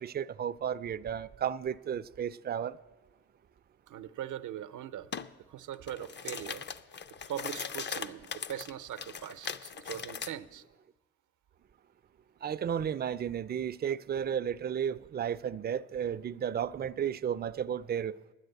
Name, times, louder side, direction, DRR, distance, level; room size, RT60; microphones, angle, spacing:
voice 1, 0.0-2.8 12.4-18.1, right 8 dB, 35° right, 0.4 m, -33 dB
voice 2, 3.9-5.1 5.5-6.6 7.2-10.6, right 11 dB, 75° right, 0.6 m, -41 dB
sound 1, 5.1-5.3 5.7-10.3, left 6 dB, 35° left, 0.5 m, -39 dB
10.5 x 9.8 x 8.0 m
cardioid pair, 85°, 31 cm